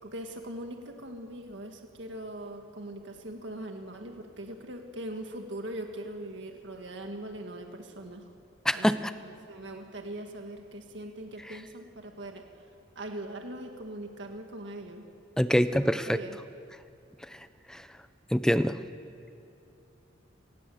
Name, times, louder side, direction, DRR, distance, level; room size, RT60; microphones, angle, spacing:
voice 1, 0.0-8.2 8.7-12.4 13.0-15.1 15.5-16.4, right 1 dB, 65° right, 4 dB, 1.9 m, -41 dB
voice 2, 8.7-9.1 15.4-16.2 18.3-18.7, equal, 5° left, 12 dB, 0.6 m, -24 dB
28.0 x 20.0 x 7.9 m, 2.6 s
head